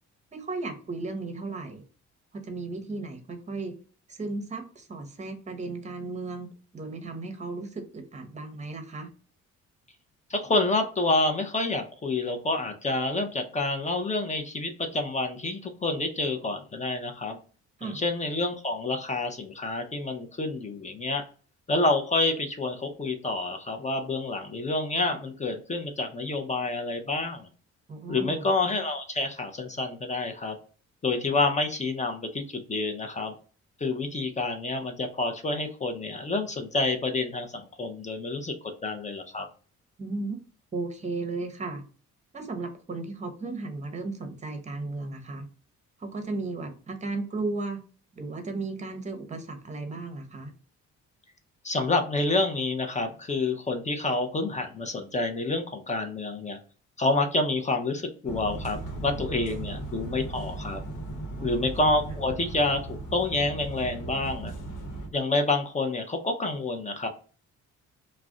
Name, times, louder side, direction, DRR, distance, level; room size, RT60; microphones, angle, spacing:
voice 1, 0.3-1.8 2.3-3.8 4.1-9.1 17.8-18.0 27.9-28.5 40.0-40.4 40.7-41.8 42.3-45.5 46.0-47.8 48.1-50.5 61.4-61.5, right 3 dB, 25° right, 6 dB, 0.7 m, -35 dB
voice 2, 10.3-17.4 17.8-21.2 21.7-27.5 28.1-30.6 31.0-33.3 33.8-38.5 38.8-39.5 51.6-56.6 57.0-60.8 61.4-64.5 65.1-67.1, left 2 dB, 25° left, 5 dB, 0.5 m, -28 dB
sound 1, 58.2-65.1, right 2 dB, 85° left, 0.9 m, -37 dB
2.4 x 2.1 x 3.6 m, 0.38 s
cardioid pair, 90°, 30 cm